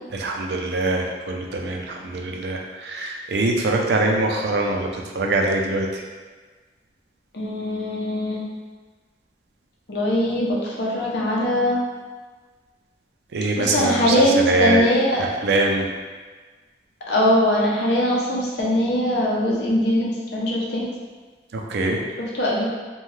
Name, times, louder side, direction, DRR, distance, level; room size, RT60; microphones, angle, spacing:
voice 1, 0.1-6.0 13.3-14.8 15.2-15.9 21.5-22.0, right 2 dB, 75° right, 0 dB, 0.4 m, -23 dB
voice 2, 7.3-8.4 9.9-11.8 13.6-15.2 17.1-20.9 22.4-22.7, left 1 dB, 75° left, -3 dB, 0.6 m, -21 dB
2.7 x 2.3 x 3.1 m, 1.4 s
head